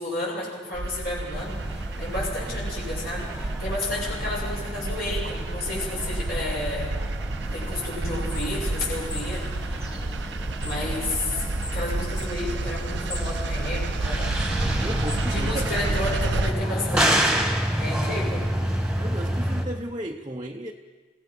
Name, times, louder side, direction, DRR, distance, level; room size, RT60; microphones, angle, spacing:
voice 1, 0.0-6.9 7.5-9.8 10.6-11.4 11.7-14.3 15.2-17.4 17.8-18.5, left 2 dB, 50° left, -4 dB, 7.3 m, -32 dB
sound 1, 0.7-16.5, right 2 dB, 70° right, 0.8 m, -30 dB
sound 2, 1.3-19.6, equal, 5° right, 1.9 m, -30 dB
sound 3, 7.4-16.1, left 1 dB, 20° left, 2.3 m, -40 dB
voice 2, 14.8-15.7 19.0-20.7, right 1 dB, 25° right, 2 dB, 0.9 m, -34 dB
28.5 x 17.5 x 6.1 m, 1.4 s
head